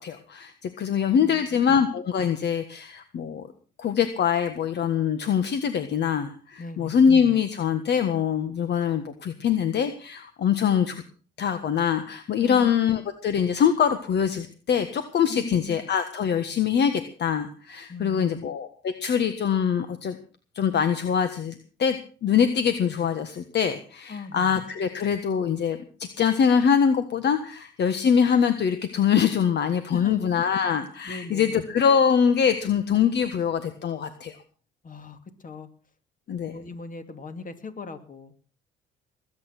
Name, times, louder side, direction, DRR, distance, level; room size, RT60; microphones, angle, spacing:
voice 1, 0.0-3.5 3.8-10.9 11.4-20.2 20.5-34.3 36.3-36.5, left 7 dB, 55° left, 10 dB, 1.6 m, -23 dB
voice 2, 1.1-1.8 6.6-7.1 12.4-12.7 15.3-15.8 17.9-18.4 24.1-24.6 29.9-30.2 31.0-31.6 34.8-35.7 36.5-38.3, left 4 dB, 40° left, 8 dB, 2.8 m, -39 dB
20.5 x 9.0 x 6.1 m, 0.40 s
supercardioid pair, 75°, 21 cm